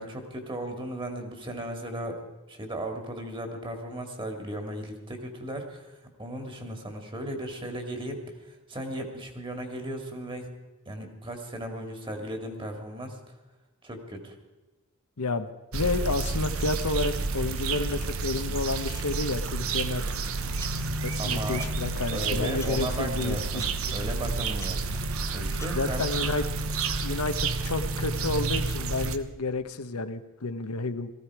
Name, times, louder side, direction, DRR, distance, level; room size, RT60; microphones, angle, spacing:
voice 1, 0.0-2.2 2.5-8.2 8.5-10.5 10.9-13.2 13.8-14.3 21.2-21.6 22.1-24.8 25.3-26.1, right 1 dB, 20° right, 4 dB, 2.2 m, -36 dB
voice 2, 15.2-15.5 15.7-20.0 21.0-24.3 25.7-26.4 27.0-31.1, left 3 dB, 80° left, 9 dB, 1.0 m, -30 dB
sound 1, 15.7-29.2, right 3 dB, 65° right, 1.0 m, -30 dB
sound 2, 19.8-26.0, left 2 dB, 10° left, 0.8 m, -48 dB
18.0 x 15.0 x 4.8 m, 1.1 s
head